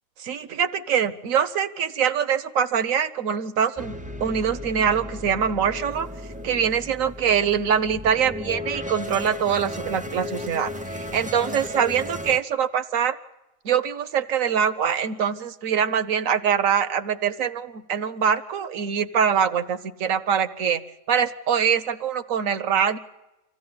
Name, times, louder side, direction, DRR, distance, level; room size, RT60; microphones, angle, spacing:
voice 1, 0.2-3.9 4.2-6.1 6.4-13.2 13.6-20.8 21.1-23.0, right 7 dB, 70° right, 14 dB, 1.4 m, -23 dB
sound 1, 3.8-12.4, left 1 dB, 10° right, 0.5 m, -35 dB
25.5 x 15.0 x 9.5 m, 0.97 s
omnidirectional pair, 1.4 m